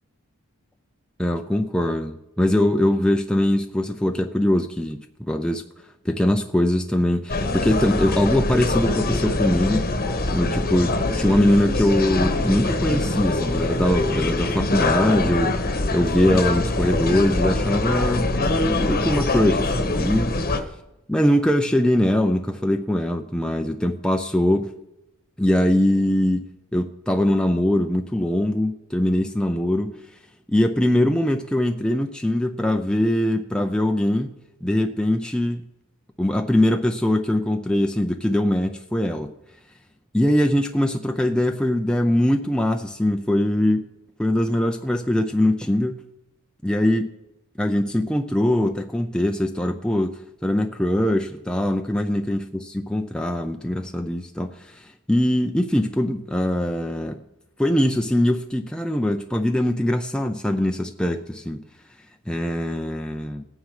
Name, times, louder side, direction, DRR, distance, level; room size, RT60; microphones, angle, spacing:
voice 1, 1.2-5.6 6.0-9.9 10.3-15.5 15.9-18.3 18.6-20.3 21.1-24.7 25.4-26.5 26.7-30.0 30.5-34.4 34.6-35.6 36.2-39.3 40.1-43.8 44.2-46.0 46.6-47.1 47.6-50.1 50.4-57.2 57.6-61.6 62.3-63.4, left 1 dB, 5° left, 4 dB, 0.5 m, -22 dB
sound 1, 7.3-20.6, left 2 dB, 45° left, 1.1 m, -23 dB
17.5 x 9.2 x 4.9 m, 0.91 s
head